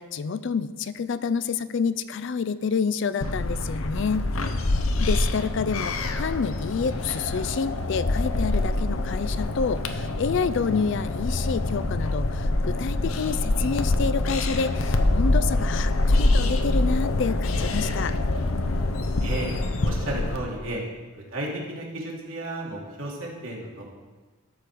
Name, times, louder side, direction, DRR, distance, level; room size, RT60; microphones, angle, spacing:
voice 1, 0.0-4.3 5.0-18.1, left 5 dB, 60° left, 14 dB, 0.4 m, -28 dB
sound 1, 3.2-20.4, left 2 dB, 85° left, 0.8 m, -25 dB
voice 2, 19.2-19.5 19.8-20.8 21.1-23.8, right 1 dB, 80° right, -3 dB, 2.6 m, -33 dB
13.0 x 5.1 x 6.1 m, 1.3 s
head